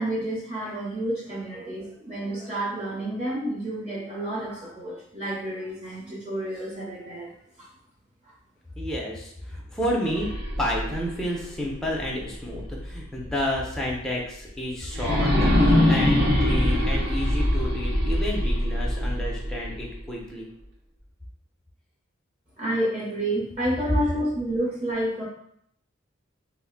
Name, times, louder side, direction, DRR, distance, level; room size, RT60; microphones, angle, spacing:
voice 1, 0.0-7.3 22.6-25.2, right 1 dB, 35° right, -8 dB, 0.8 m, -29 dB
voice 2, 8.8-10.3 10.6-20.5, equal, 5° left, -4 dB, 0.4 m, -30 dB
sound 1, 10.0-13.0 13.4-13.5 14.9-20.0, left 1 dB, 55° right, 0.9 m, -23 dB
2.5 x 2.1 x 3.8 m, 0.70 s
head